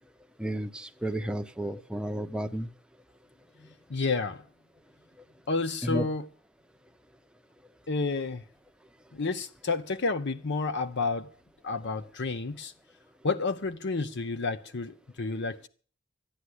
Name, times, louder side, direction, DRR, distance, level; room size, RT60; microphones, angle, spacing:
voice 1, 0.4-2.7 5.8-6.1, right 1 dB, 5° right, 0.8 m, -32 dB
voice 2, 3.9-4.4 5.5-6.2 7.9-8.4 9.1-11.3 11.6-12.7 13.2-15.7, left 3 dB, 55° left, 0.8 m, -30 dB
13.5 x 9.7 x 8.0 m
head